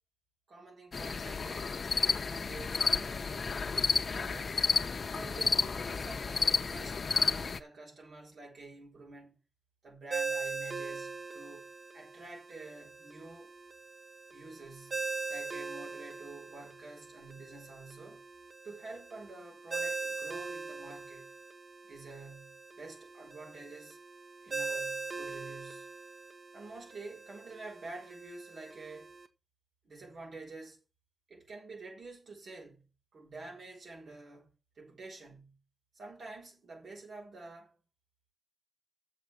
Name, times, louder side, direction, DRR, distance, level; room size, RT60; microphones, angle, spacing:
voice 1, 0.5-1.8 2.1-4.6 5.1-9.4 9.8-11.7 11.9-13.5 14.3-15.0 15.3-18.2 18.6-21.3 21.8-24.0 24.4-25.9 26.5-29.1 29.8-30.8 31.3-32.8 33.1-35.6 35.9-37.7, right 3 dB, 85° right, 6.5 m, -49 dB
sound 1, 0.9-7.6, left 5 dB, 60° left, 0.8 m, -31 dB
Ringtone, 10.1-29.3, right 4 dB, 50° right, 1.3 m, -41 dB
7.7 x 6.6 x 7.6 m
wide cardioid pair, 110°, 0 cm